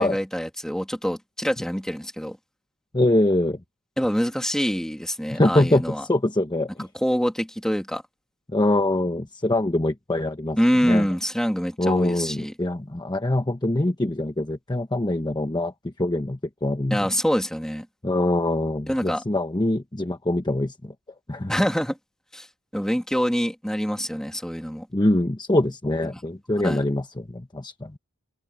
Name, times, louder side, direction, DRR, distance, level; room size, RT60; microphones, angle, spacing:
voice 1, 0.0-2.4 4.0-6.0 6.8-8.0 10.6-12.5 16.9-17.9 18.9-19.2 21.5-22.0 22.3-22.5 22.7-24.9 26.1-26.2 26.6-26.8, equal, 5° left, 2.8 m, -25 dB
voice 2, 2.9-3.6 5.3-6.7 8.5-11.1 11.8-15.7 16.0-17.0 18.0-20.7 21.3-21.5 24.9-27.9, left 1 dB, 20° left, 1.0 m, -23 dB
head